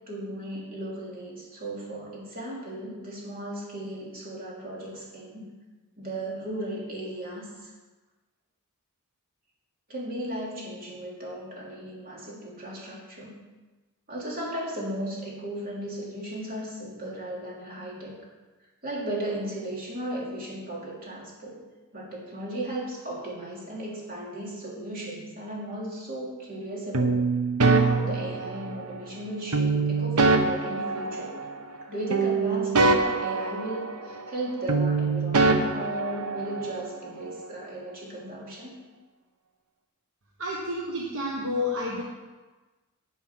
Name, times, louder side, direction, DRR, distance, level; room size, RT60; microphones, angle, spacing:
voice 1, 0.1-5.5 6.0-7.7 9.9-13.4 14.1-18.2 18.8-21.6 21.9-27.2 27.7-31.3 31.9-38.7, right 1 dB, 40° right, -4 dB, 3.2 m, -36 dB
sound 1, 26.9-28.9 29.5-31.8 32.1-34.4 34.7-36.7, right 3 dB, 80° right, 1.0 m, -24 dB
voice 2, 40.4-42.0, left 2 dB, 60° right, -2 dB, 1.3 m, -30 dB
10.5 x 7.5 x 6.0 m, 1.2 s
head